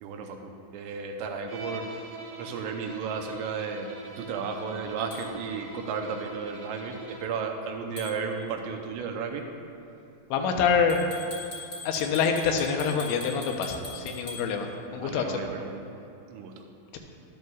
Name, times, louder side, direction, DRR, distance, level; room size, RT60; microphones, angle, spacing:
voice 1, 0.0-3.9 4.2-9.5 15.0-15.9 16.3-16.7, right 5 dB, 80° right, 3 dB, 2.8 m, -34 dB
Bowed string instrument, 1.5-7.4, right 2 dB, 60° right, 1.5 m, -43 dB
sound 1, 5.1-5.3 8.0-8.2 10.9-14.5, left 3 dB, 55° left, 1.0 m, -41 dB
voice 2, 10.3-11.1 11.9-15.4 16.9-17.0, left 6 dB, 85° left, 3 dB, 3.2 m, -26 dB
12.5 x 12.0 x 2.4 m, 2.8 s
omnidirectional pair, 5.2 m